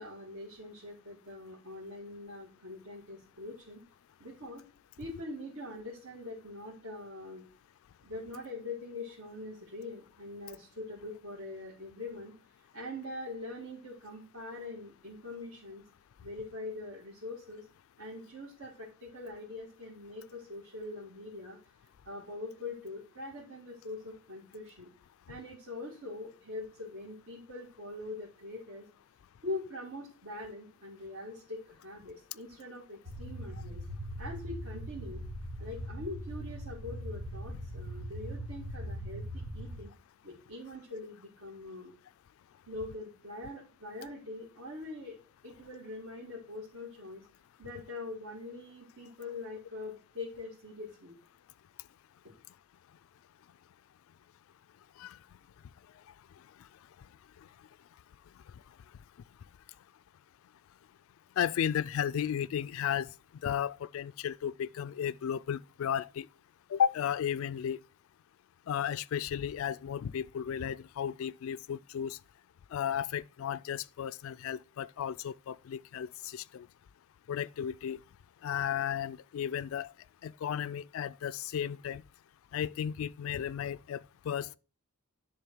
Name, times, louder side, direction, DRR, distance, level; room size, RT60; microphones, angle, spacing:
voice 1, 0.0-3.8 4.2-4.6 5.0-7.5 8.0-12.3 12.7-15.8 16.2-17.7 18.0-21.6 22.0-24.9 25.3-28.9 29.4-33.8 34.2-35.2 35.6-39.3 39.5-39.9 40.2-41.9 42.6-45.2 45.4-47.3 47.6-51.1 52.2-52.3, left 2 dB, 70° right, 2.2 m, -43 dB
sound 1, 33.1-39.8, equal, 90° right, 1.7 m, -40 dB
voice 2, 61.4-63.1 63.4-66.3 66.7-67.8 68.7-72.2 72.7-76.7 77.3-78.0 78.4-79.9 80.2-82.0 82.5-84.6, left 9 dB, 65° left, 0.3 m, -34 dB
10.5 x 3.5 x 6.1 m
head